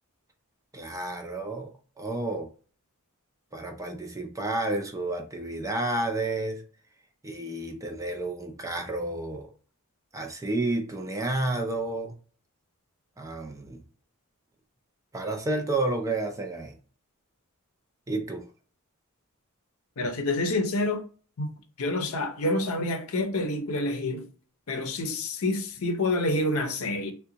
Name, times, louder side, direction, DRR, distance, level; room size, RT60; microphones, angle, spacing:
voice 1, 0.7-1.7 2.0-2.5 3.5-6.6 7.2-9.5 10.1-12.1 13.2-13.8 15.1-16.8 18.1-18.5, right 2 dB, 15° right, 0.5 m, -30 dB
voice 2, 20.0-21.0 21.4-21.5 21.8-24.2 24.7-27.1, left 2 dB, 65° left, 0.6 m, -28 dB
3.6 x 2.2 x 2.8 m
head